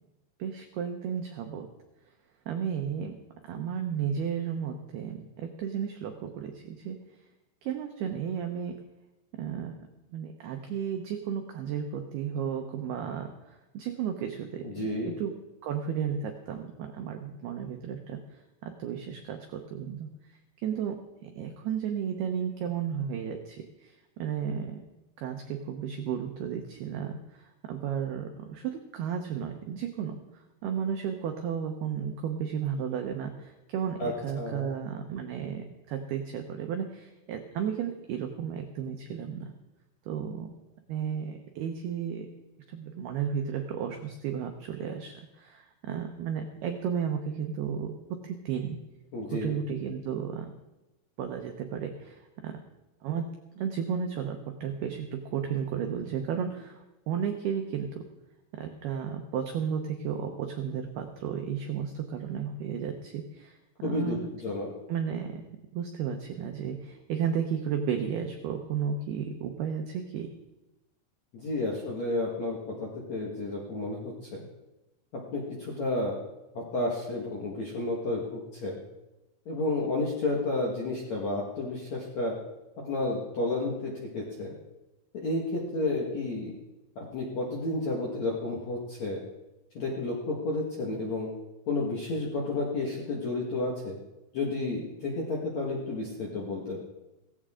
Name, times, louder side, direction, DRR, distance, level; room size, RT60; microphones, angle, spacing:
voice 1, 0.4-1.7 2.5-3.2 3.5-7.0 7.6-8.8 9.4-9.9 10.1-15.3 15.6-20.1 20.6-24.8 25.2-39.5 40.1-40.5 40.9-42.3 42.7-47.9 48.2-48.8 49.3-50.5 51.2-52.6 53.0-53.3 53.6-56.8 57.1-58.0 58.5-63.6 63.8-64.3 64.9-65.4 65.7-70.3, right 7 dB, 80° right, 4 dB, 2.3 m, -33 dB
voice 2, 14.6-15.2 34.0-34.7 49.1-49.6 63.8-64.7 71.3-74.4 75.3-76.2 76.5-78.8 79.5-82.4 82.8-84.5 85.1-86.5 87.0-89.2 89.7-91.3 91.7-94.0 94.3-96.8, left 2 dB, 60° left, -3 dB, 1.9 m, -31 dB
17.0 x 16.0 x 3.7 m, 1.0 s
omnidirectional pair, 5.9 m